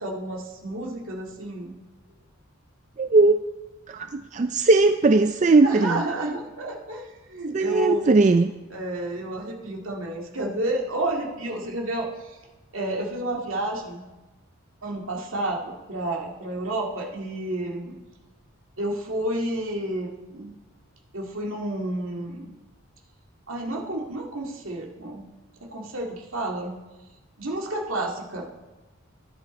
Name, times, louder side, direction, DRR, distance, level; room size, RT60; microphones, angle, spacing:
voice 1, 0.0-1.7 5.6-8.0 8.7-12.4 12.7-14.0 14.8-18.0 18.8-20.5 21.1-22.5 23.5-25.3 25.7-26.7 27.4-28.4, right 1 dB, 70° right, 0 dB, 2.0 m, -30 dB
voice 2, 3.0-3.4 3.9-6.0 7.5-8.5, right 3 dB, 35° right, 7 dB, 0.3 m, -19 dB
15.5 x 10.5 x 4.2 m, 1.2 s
head